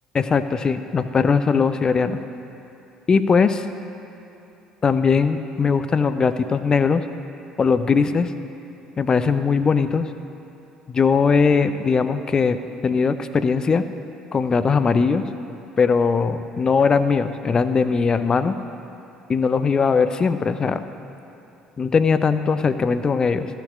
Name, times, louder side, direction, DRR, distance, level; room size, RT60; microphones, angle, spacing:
voice 1, 0.1-2.2 3.1-3.6 4.8-7.0 7.6-8.3 9.0-10.1 10.9-13.8 14.3-15.3 15.8-18.5 19.3-20.8 21.8-23.5, left 5 dB, 30° left, 11 dB, 0.5 m, -20 dB
14.5 x 5.7 x 6.2 m, 2.9 s
figure-of-eight pair, 55°, 3 cm